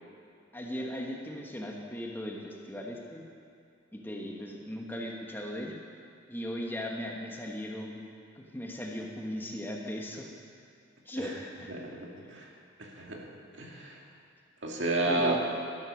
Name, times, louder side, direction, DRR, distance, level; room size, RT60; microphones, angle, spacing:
voice 1, 0.5-3.2 3.9-5.7 6.3-8.0 8.3-10.3 11.0-11.7 15.1-15.4, equal, 10° left, -1 dB, 1.2 m, -37 dB
voice 2, 11.8-12.5 12.8-13.3 13.5-13.9 14.6-15.4, right 2 dB, 70° right, -1 dB, 2.1 m, -31 dB
12.5 x 12.0 x 6.3 m, 2.5 s
head